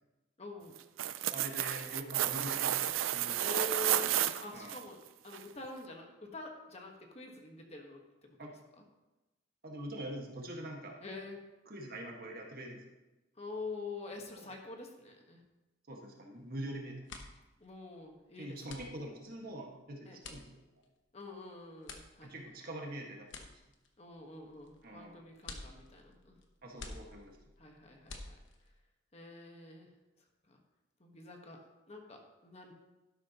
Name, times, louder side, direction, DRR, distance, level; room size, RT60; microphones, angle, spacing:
voice 1, 0.4-0.8 2.8-2.9 3.4-4.1 4.4-8.4 8.8-8.9 11.0-11.4 13.4-15.4 17.6-18.9 20.0-20.2 21.1-22.5 24.0-26.3 27.6-28.3 29.1-29.9 30.5-30.6 31.0-32.7, left 3 dB, 35° left, 2 dB, 1.3 m, -46 dB
sound 1, 0.8-4.8 5.3-5.4, right 12 dB, 90° right, 0.5 m, -32 dB
voice 2, 1.3-2.9 3.1-3.5 4.5-4.8 8.4-8.5 9.6-11.0 11.7-12.8 14.4-14.5 15.9-16.9 18.4-20.4 22.2-23.3 24.8-25.2 26.6-27.4, right 1 dB, 50° right, 0 dB, 1.7 m, -44 dB
sound 2, 16.4-16.6 16.9-28.8, left 3 dB, 70° left, 1.1 m, -51 dB
12.0 x 11.0 x 3.0 m, 1.0 s
head